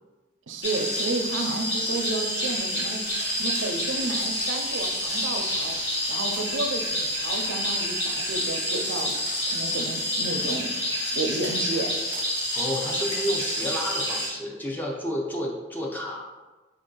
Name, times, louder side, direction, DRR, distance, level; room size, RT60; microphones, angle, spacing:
voice 1, 0.5-10.7 11.1-11.9, right 3 dB, 85° right, 4 dB, 0.5 m, -32 dB
sound 1, 0.6-14.3, equal, 60° left, 1.2 m, -28 dB
voice 2, 12.5-16.3, equal, 10° left, -1 dB, 0.5 m, -31 dB
4.5 x 2.6 x 3.7 m, 1.2 s
head